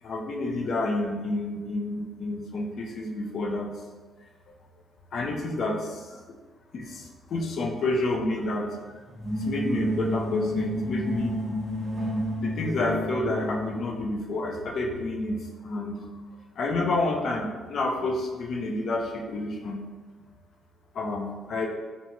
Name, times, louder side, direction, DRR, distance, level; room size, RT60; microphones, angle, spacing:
voice 1, 0.0-3.7 5.1-6.2 6.7-8.9 9.4-11.4 12.4-16.0 16.6-19.8 20.9-21.7, left 2 dB, 60° left, 1 dB, 0.4 m, -29 dB
sound 1, 9.1-13.9, equal, 15° right, 0.7 m, -30 dB
2.6 x 2.3 x 2.8 m, 1.3 s
cardioid pair, 90°, 0 cm